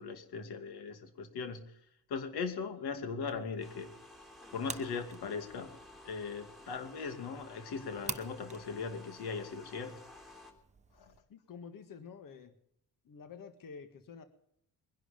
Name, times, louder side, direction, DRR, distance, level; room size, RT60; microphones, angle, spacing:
voice 1, 0.0-1.6 2.1-3.9 4.5-5.7 6.0-10.0 11.0-11.1, left 5 dB, 85° left, 7 dB, 2.6 m, -39 dB
sound 1, 3.3-11.2, right 4 dB, 20° right, 1.0 m, -49 dB
sound 2, 3.6-10.5, left 2 dB, ahead, 3.3 m, -53 dB
voice 2, 11.3-12.5 13.1-14.2, left 6 dB, 60° left, 9 dB, 1.7 m, -49 dB
22.0 x 11.0 x 5.2 m, 0.72 s
cardioid pair, 140°, 38 cm